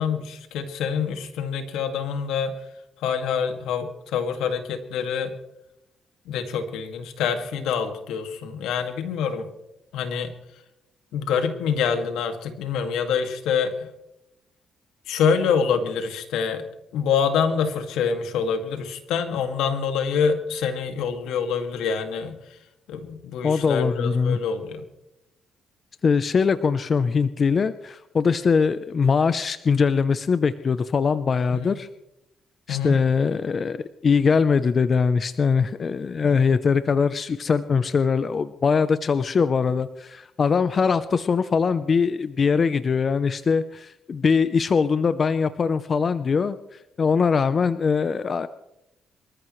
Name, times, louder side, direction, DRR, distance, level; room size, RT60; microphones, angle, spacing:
voice 1, 0.0-2.5 3.0-5.3 6.3-9.5 9.9-10.3 11.1-13.9 15.1-16.7 16.9-22.6 22.9-24.8 31.5-31.7 32.7-33.0 36.2-36.5, left 6 dB, 90° left, 6 dB, 2.1 m, -26 dB
voice 2, 23.4-24.4 26.0-31.9 32.7-48.5, left 5 dB, 45° left, 13 dB, 0.6 m, -22 dB
26.5 x 14.0 x 3.2 m, 0.87 s
cardioid pair, 90°, 0 cm